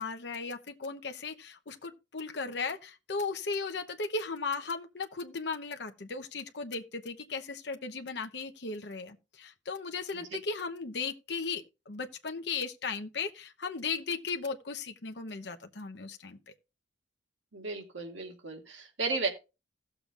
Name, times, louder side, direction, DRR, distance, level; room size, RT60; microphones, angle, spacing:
voice 1, 0.0-16.4, left 4 dB, 65° left, 0.9 m, -36 dB
voice 2, 17.5-19.3, right 3 dB, 90° right, 2.2 m, -34 dB
17.0 x 6.9 x 2.4 m
head